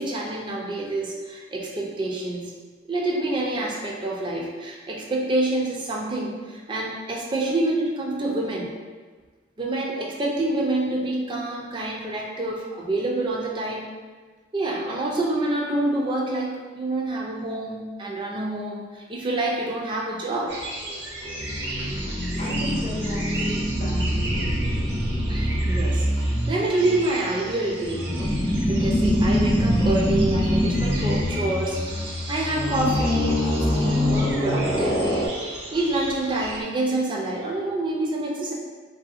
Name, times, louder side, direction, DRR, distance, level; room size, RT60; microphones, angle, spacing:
voice 1, 0.0-2.5 2.8-8.7 9.6-13.9 14.5-20.5 25.3-28.3 28.7-31.8 32.3-35.3 35.7-38.5, right 2 dB, 25° right, -2 dB, 0.4 m, -27 dB
sound 1, 20.5-36.6, right 2 dB, 60° right, 0.6 m, -36 dB
sound 2, 21.2-35.3, equal, 75° left, 0.7 m, -24 dB
voice 2, 22.4-24.8, left 1 dB, 40° left, -4 dB, 0.6 m, -35 dB
3.3 x 2.7 x 2.4 m, 1.4 s
head